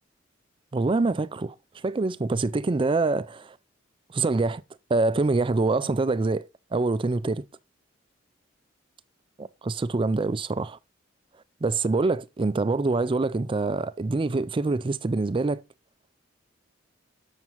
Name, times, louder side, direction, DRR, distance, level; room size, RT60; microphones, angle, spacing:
voice 1, 0.7-1.5 1.8-3.6 4.1-4.6 4.9-7.5 9.4-10.8 11.6-15.6, right 3 dB, 25° right, 0.4 m, -25 dB
7.3 x 7.2 x 3.0 m
head